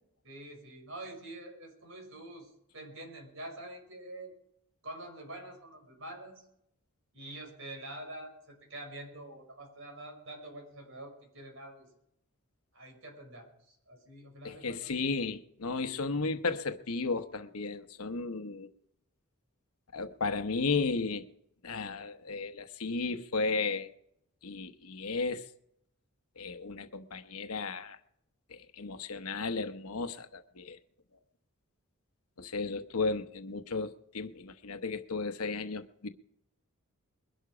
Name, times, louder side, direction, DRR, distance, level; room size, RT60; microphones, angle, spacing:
voice 1, 0.2-4.3 4.8-6.5 7.1-11.9 12.7-14.9, right 1 dB, 60° right, 5.6 m, -46 dB
voice 2, 14.4-18.7 19.9-21.2 21.6-23.9 24.4-25.4 26.4-28.0 28.5-30.8 32.4-36.1, left 4 dB, 85° left, 1.0 m, -34 dB
21.5 x 11.5 x 5.0 m
head